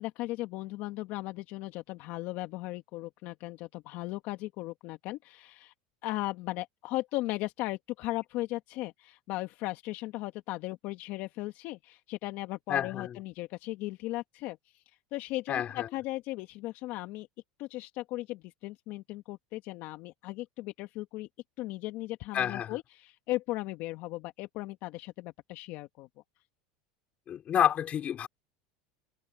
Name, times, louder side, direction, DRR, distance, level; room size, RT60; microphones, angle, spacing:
voice 1, 0.0-5.7 6.0-14.8 15.1-17.3 17.6-21.3 21.6-26.1, left 18 dB, 60° left, 1.5 m, -37 dB
voice 2, 12.7-13.2 15.5-15.9 22.3-22.8 27.3-28.3, left 9 dB, 40° left, 3.5 m, -29 dB
supercardioid pair, 110°, 4 cm